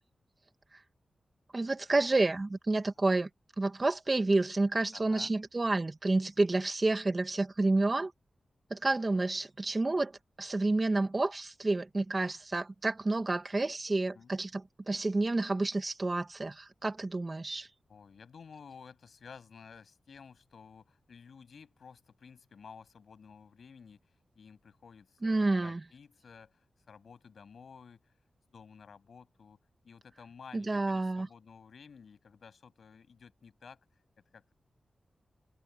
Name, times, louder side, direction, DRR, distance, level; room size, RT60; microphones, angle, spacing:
voice 1, 1.5-3.3 3.6-8.1 8.7-10.1 10.4-17.7 25.2-25.8 30.5-31.3, right 2 dB, 30° right, 1.8 m, -29 dB
voice 2, 4.9-5.4 14.1-14.3 17.9-24.0 24.4-28.1 28.5-33.8 34.3-34.5, left 6 dB, 70° left, 7.1 m, -53 dB
wide cardioid pair, 130°, 0 cm